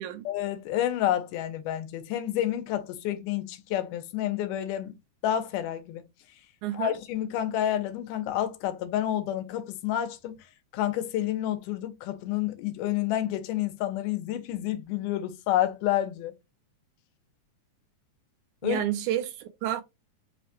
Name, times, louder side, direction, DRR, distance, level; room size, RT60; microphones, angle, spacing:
voice 1, 0.3-5.0 5.2-6.1 6.7-10.4 10.7-16.3 18.6-18.8, left 12 dB, 90° left, 2.3 m, -29 dB
voice 2, 6.6-6.9 18.6-19.8, right 11 dB, 80° right, 2.0 m, -30 dB
5.4 x 2.1 x 2.9 m
omnidirectional pair, 3.6 m